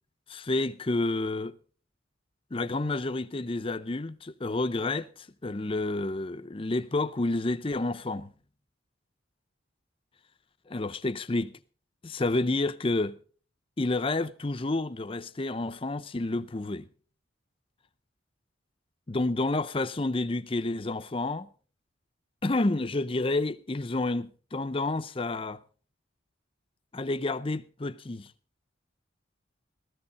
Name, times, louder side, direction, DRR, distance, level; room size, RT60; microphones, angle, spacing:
voice 1, 0.3-1.6 2.5-8.3 10.7-11.6 12.0-13.2 13.8-16.9 19.1-21.5 22.4-25.6 26.9-28.3, left 2 dB, 25° left, 0.6 m, -29 dB
16.0 x 14.0 x 4.1 m
head